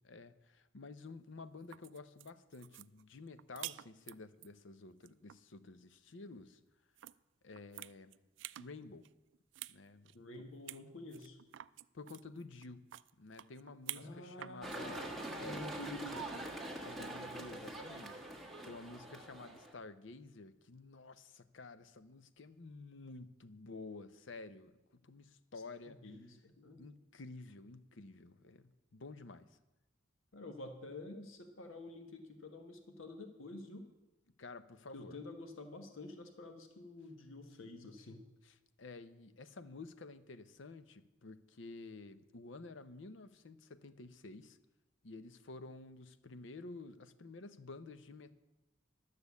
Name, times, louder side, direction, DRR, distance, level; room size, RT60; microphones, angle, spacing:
voice 1, 0.0-6.6 7.4-8.1 8.6-9.1 9.7-10.1 11.9-12.8 13.2-15.7 16.6-24.8 25.0-26.0 26.8-29.5 34.4-35.2 38.4-44.6 45.0-48.3, left 3 dB, 65° left, 13 dB, 0.7 m, -51 dB
sound 1, 1.5-4.5 4.9-5.4 7.0-7.1 7.5-8.7 9.0-9.8 10.0-10.1 10.7-10.8 11.1-14.1 14.4-14.8 16.1-16.5, right 15 dB, 65° right, 0.3 m, -49 dB
voice 2, 10.1-11.4 13.9-16.5 25.9-26.8 30.3-33.9 34.9-38.2, left 2 dB, 85° left, 6 dB, 1.2 m, -49 dB
sound 2, 14.6-19.7, right 1 dB, ahead, 1.5 m, -44 dB
12.0 x 6.7 x 8.3 m, 1.0 s
head